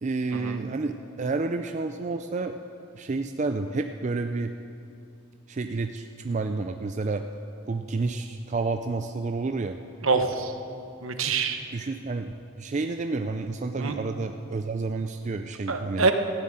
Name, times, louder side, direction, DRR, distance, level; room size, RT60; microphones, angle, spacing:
voice 1, 0.0-2.6 2.9-4.5 5.5-7.2 7.7-9.8 11.7-16.1, right 3 dB, 35° right, 6 dB, 0.4 m, -30 dB
voice 2, 10.0-10.5 11.0-11.6 13.8-13.9 15.7-16.1, right 4 dB, 70° right, 6 dB, 1.0 m, -25 dB
15.0 x 7.3 x 8.9 m, 2.6 s
head